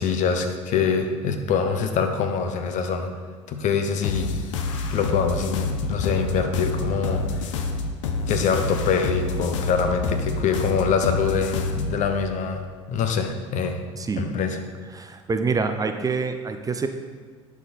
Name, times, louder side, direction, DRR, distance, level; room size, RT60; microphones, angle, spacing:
voice 1, 0.0-3.1 3.5-4.3 4.9-7.6 8.3-12.6 12.9-13.8 14.2-14.6, left 5 dB, 50° left, 6 dB, 1.0 m, -24 dB
sound 1, 4.0-11.9, left 3 dB, 75° left, 0.7 m, -28 dB
voice 2, 15.0-16.9, right 4 dB, 20° right, 7 dB, 0.6 m, -26 dB
11.0 x 5.0 x 4.2 m, 1.5 s
hypercardioid pair, 65°, 16 cm